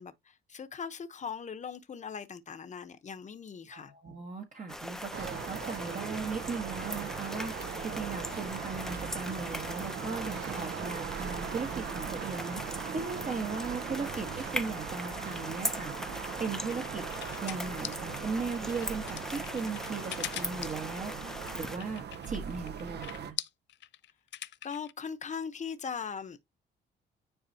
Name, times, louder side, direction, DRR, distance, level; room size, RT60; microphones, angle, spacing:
voice 1, 0.0-3.9 24.6-26.5, left 6 dB, 35° left, 1.0 m, -40 dB
voice 2, 3.7-7.5 7.8-12.6 12.9-15.9 16.4-17.0 17.4-21.1 21.5-23.4, right 4 dB, 40° right, 1.4 m, -37 dB
sound 1, 4.7-21.8, left 1 dB, ahead, 0.7 m, -40 dB
sound 2, 5.1-23.3, right 7 dB, 60° right, 0.8 m, -40 dB
sound 3, 16.2-24.9, left 13 dB, 65° left, 0.4 m, -42 dB
9.7 x 4.0 x 2.8 m
cardioid pair, 90°, 20 cm